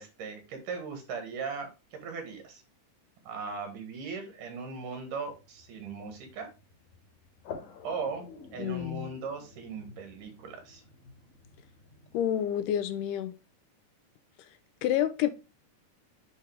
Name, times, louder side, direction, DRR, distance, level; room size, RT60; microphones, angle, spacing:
voice 1, 0.0-2.6 3.2-6.5 7.8-8.3 8.5-10.8, right 5 dB, 75° right, 3.2 m, -38 dB
sound 1, 5.3-12.3, left 6 dB, 70° left, 2.7 m, -49 dB
voice 2, 8.6-9.1 12.1-13.3 14.8-15.3, left 11 dB, 85° left, 2.3 m, -28 dB
8.6 x 3.9 x 3.5 m
omnidirectional pair, 3.7 m